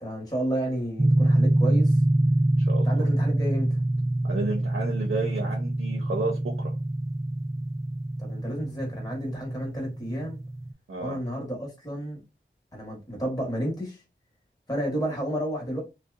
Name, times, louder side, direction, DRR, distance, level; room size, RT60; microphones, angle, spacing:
voice 1, 0.0-2.0 2.8-3.8 8.2-10.4 11.0-12.2 12.7-14.0 14.7-15.8, right 1 dB, 20° left, 1.0 m, -31 dB
sound 1, 1.0-10.7, right 1 dB, 15° right, 0.3 m, -25 dB
voice 2, 2.6-3.0 4.3-6.7 10.9-11.2, right 3 dB, 80° right, 0.6 m, -32 dB
2.6 x 2.1 x 2.3 m
wide cardioid pair, 45°, 21 cm